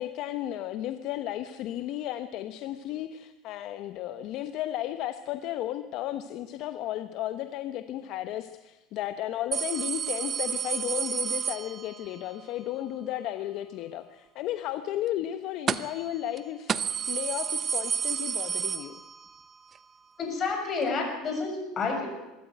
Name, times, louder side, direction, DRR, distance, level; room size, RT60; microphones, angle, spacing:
voice 1, 0.0-19.0, left 12 dB, 55° left, 10 dB, 1.0 m, -34 dB
sound 1, 9.5-12.2 15.7-16.1 16.4-16.5 16.7-19.4 19.8-19.9 20.9-21.0, right 7 dB, 30° right, 0.9 m, -31 dB
voice 2, 20.2-22.1, left 4 dB, 35° left, 3 dB, 7.1 m, -29 dB
23.5 x 13.5 x 9.2 m, 1.0 s
supercardioid pair, 125°, 0 cm